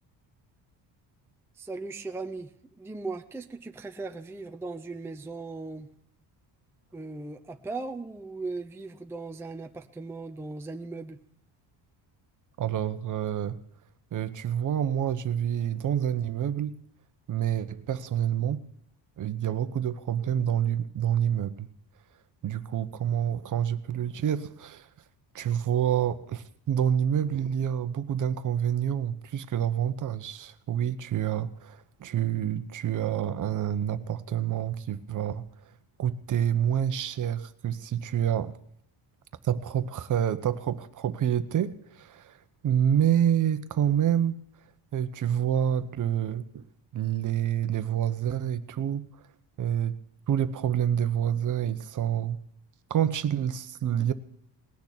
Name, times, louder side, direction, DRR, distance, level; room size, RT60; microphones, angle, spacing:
voice 1, 1.5-5.9 6.9-11.2, right 3 dB, 5° right, 0.6 m, -38 dB
voice 2, 12.6-13.6 14.1-16.8 17.3-18.6 19.2-21.7 22.4-24.9 25.3-35.5 36.0-38.5 39.4-42.3 42.6-44.4 44.9-46.6 46.9-49.1 49.6-50.0 50.3-52.4 52.9-54.1, right 9 dB, 45° right, 1.0 m, -27 dB
19.5 x 6.7 x 10.0 m
cardioid pair, 155°, 45 cm